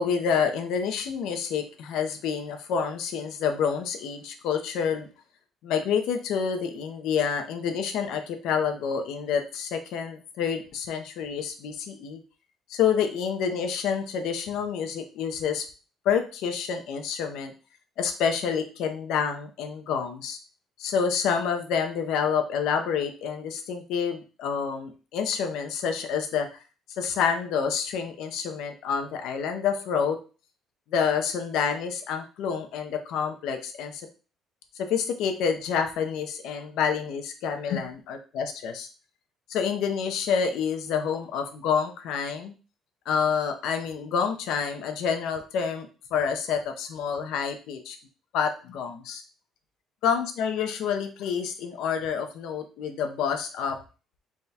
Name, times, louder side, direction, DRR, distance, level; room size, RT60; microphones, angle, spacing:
voice 1, 0.0-5.1 5.6-12.2 12.7-15.6 16.0-17.5 18.0-20.4 20.8-26.5 27.0-30.2 30.9-34.1 34.7-38.9 39.5-42.5 43.1-48.0 48.3-49.2 50.0-53.8, left 7 dB, 80° left, 6 dB, 0.6 m, -28 dB
3.5 x 2.3 x 4.1 m, 0.35 s
cardioid pair, 135°, 0 cm